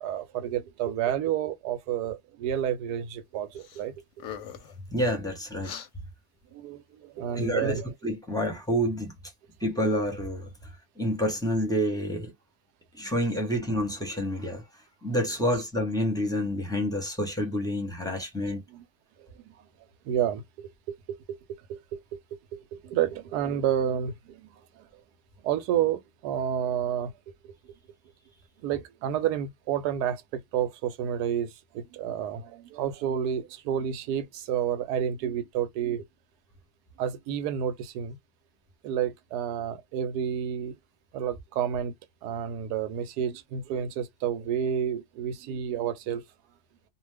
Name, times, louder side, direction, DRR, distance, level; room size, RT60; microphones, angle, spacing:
voice 1, 0.0-3.9 6.5-7.9 9.7-9.8 15.3-15.6 18.1-18.8 19.4-19.5 20.1-20.7 21.1-21.4 21.7-22.2 22.5-24.5 24.8-24.9 25.4-27.1 27.4-27.5 28.6-36.0 37.0-38.2 38.8-40.8 41.1-41.9 42.2-46.2, right 9 dB, 85° right, 1.1 m, -30 dB
sound 1, 3.6-3.8 4.1-4.8 5.6-5.9, left 9 dB, 60° left, 0.8 m, -40 dB
voice 2, 4.9-5.7 7.4-9.1 9.6-10.5 11.0-12.3 12.9-14.6 15.0-18.6, equal, 5° left, 0.6 m, -28 dB
2.7 x 2.2 x 3.3 m
omnidirectional pair, 1.7 m